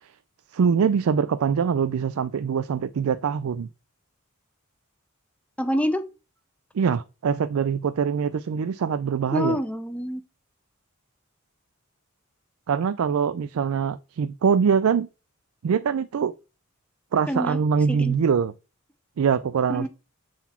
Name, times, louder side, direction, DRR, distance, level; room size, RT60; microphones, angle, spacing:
voice 1, 0.5-3.7 6.7-9.6 12.7-15.1 15.6-16.3 17.1-18.5 19.2-19.9, right 6 dB, 80° right, 0.4 m, -23 dB
voice 2, 5.6-6.0 9.3-10.2 17.3-17.6 17.9-18.1 19.7-19.9, equal, 5° left, 0.6 m, -26 dB
7.0 x 4.0 x 4.2 m
head